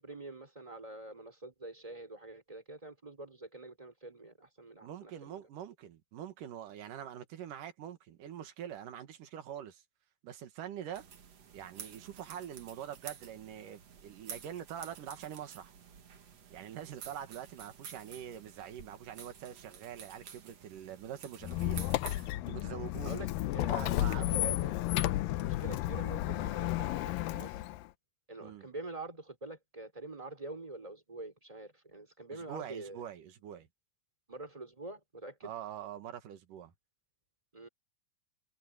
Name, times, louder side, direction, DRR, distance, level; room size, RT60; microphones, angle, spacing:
voice 1, 0.0-5.4 23.0-24.7 25.4-27.6 28.3-33.0 34.3-35.5 37.5-37.7, right 2 dB, 10° right, 4.2 m, -46 dB
voice 2, 4.8-9.8 10.2-11.0 11.5-15.7 16.5-21.9 22.4-23.2 23.7-24.8 28.4-28.7 32.3-33.7 35.4-36.7, right 10 dB, 70° right, 3.1 m, -44 dB
sound 1, 10.9-22.3, right 7 dB, 50° right, 2.8 m, -51 dB
Squeak, 21.4-27.8, left 15 dB, 85° left, 2.5 m, -32 dB
omnidirectional pair, 4.0 m